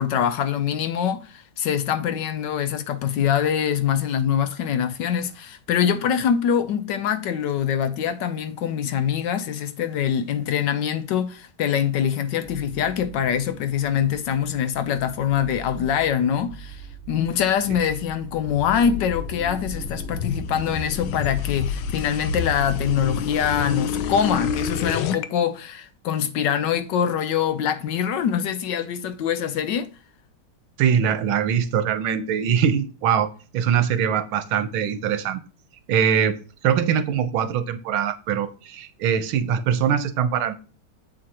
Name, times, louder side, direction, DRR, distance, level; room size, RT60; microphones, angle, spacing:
voice 1, 0.0-29.9, left 8 dB, 70° left, 1.2 m, -24 dB
sound 1, 12.4-23.7, right 5 dB, 5° left, 3.4 m, -41 dB
sound 2, 17.5-25.3, left 7 dB, 85° left, 1.5 m, -29 dB
voice 2, 30.8-33.3 33.5-35.4 35.9-40.5, right 8 dB, 85° right, 1.7 m, -22 dB
7.8 x 7.8 x 2.9 m
omnidirectional pair, 2.2 m